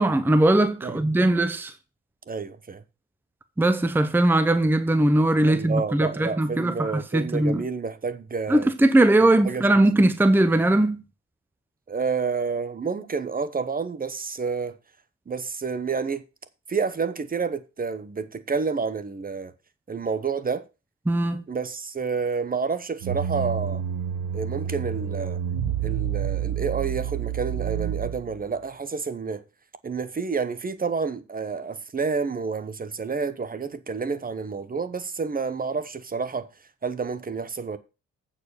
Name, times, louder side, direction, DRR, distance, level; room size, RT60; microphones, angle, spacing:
voice 1, 0.0-1.7 3.6-7.6 8.5-11.0 21.1-21.4, right 1 dB, 5° right, 0.8 m, -20 dB
voice 2, 2.3-2.8 5.4-8.7 9.4-9.7 11.9-14.8 15.3-16.2 16.7-19.5 19.9-20.6 21.5-23.8 24.3-25.4 25.8-29.4 29.8-36.5 36.8-37.8, right 5 dB, 30° right, 1.0 m, -29 dB
sound 1, 23.0-28.5, right 9 dB, 90° right, 1.3 m, -29 dB
8.4 x 4.9 x 6.7 m
cardioid pair, 90°, 30 cm